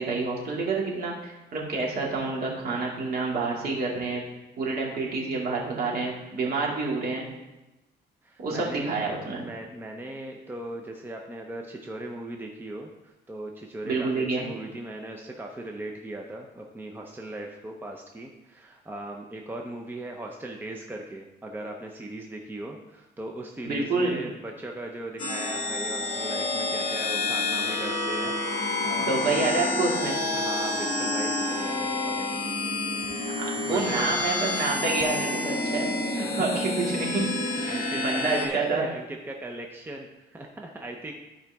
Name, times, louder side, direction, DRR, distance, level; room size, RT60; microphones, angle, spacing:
voice 1, 0.0-4.2 4.6-7.2 8.4-9.4 13.8-14.4 23.6-24.2 29.0-30.1 33.3-37.3 37.6-38.9, right 3 dB, 55° right, -3 dB, 2.4 m, -28 dB
voice 2, 8.2-8.9 9.4-29.1 30.3-33.0 33.3-34.1 36.1-36.7 37.4-41.1, right 1 dB, 10° right, 1 dB, 0.7 m, -39 dB
sound 1, 25.2-38.5, left 2 dB, 45° left, 2.0 m, -29 dB
13.5 x 5.0 x 3.5 m, 1.0 s
cardioid pair, 140°, 18 cm